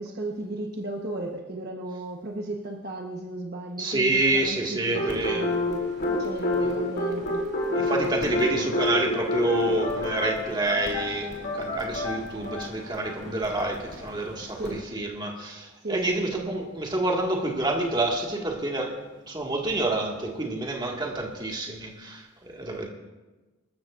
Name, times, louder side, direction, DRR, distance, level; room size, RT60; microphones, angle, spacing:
voice 1, 0.0-5.8 6.1-7.5 7.7-8.3 14.6-14.8 15.8-16.6, right 2 dB, 50° right, 1 dB, 1.1 m, -35 dB
voice 2, 3.8-5.4 6.6-6.7 7.7-19.0 19.3-22.9, right 2 dB, 20° right, -1 dB, 1.8 m, -28 dB
sound 1, 4.9-14.8, left 2 dB, 50° left, 2.9 m, -29 dB
25.5 x 13.5 x 2.5 m, 1.2 s
head